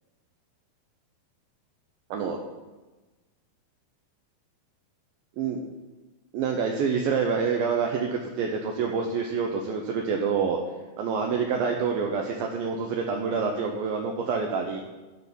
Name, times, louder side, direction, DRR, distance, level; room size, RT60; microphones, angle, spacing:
voice 1, 6.3-10.6 11.0-14.8, right 5 dB, 80° right, 2 dB, 2.1 m, -27 dB
12.5 x 4.4 x 8.1 m, 1.2 s
omnidirectional pair, 5.1 m